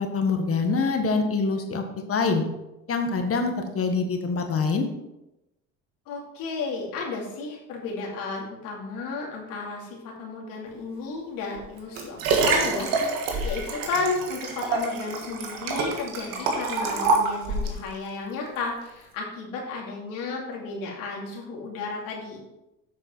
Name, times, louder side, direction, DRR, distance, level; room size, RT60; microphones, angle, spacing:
voice 1, 0.0-1.8 2.1-2.4 2.9-4.9, left 4 dB, 40° left, 5 dB, 1.6 m, -25 dB
voice 2, 6.1-12.9 13.4-22.4, left 4 dB, 75° left, -2 dB, 2.7 m, -33 dB
Liquid, 11.5-17.8 18.5-18.6, right 4 dB, 85° right, 1.6 m, -26 dB
8.0 x 6.5 x 4.5 m, 0.95 s
supercardioid pair, 80°, 34 cm